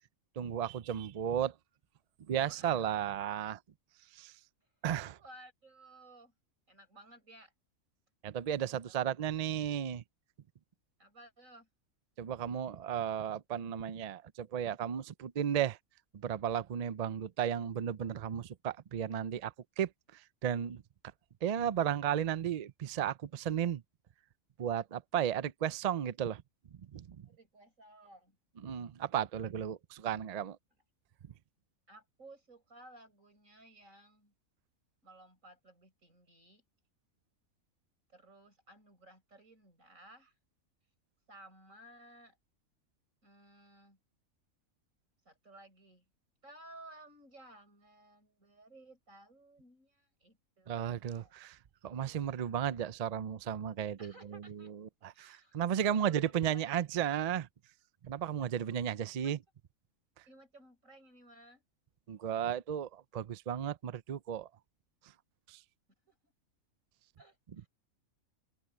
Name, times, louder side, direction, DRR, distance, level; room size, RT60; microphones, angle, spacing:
voice 1, 0.4-1.5 2.3-3.6 4.1-4.3 4.8-5.2 8.2-10.0 12.2-15.8 16.1-20.8 21.4-23.8 24.6-26.4 26.9-27.3 28.6-30.6 50.7-51.6 51.8-57.5 58.0-59.4 62.1-64.5 65.5-65.6, right 9 dB, 90° right, 0.3 m, -34 dB
voice 2, 2.4-3.4 4.0-4.1 5.2-6.3 6.7-7.5 8.7-9.1 11.0-11.7 27.3-28.4 31.9-34.3 35.0-36.6 38.1-40.3 41.3-42.4 43.2-44.0 45.2-46.0 46.4-51.5 54.0-54.7 55.1-56.7 59.1-59.3 60.3-61.6 66.1-66.3 67.2-67.7, right 1 dB, 65° right, 7.9 m, -57 dB
omnidirectional pair, 1.5 m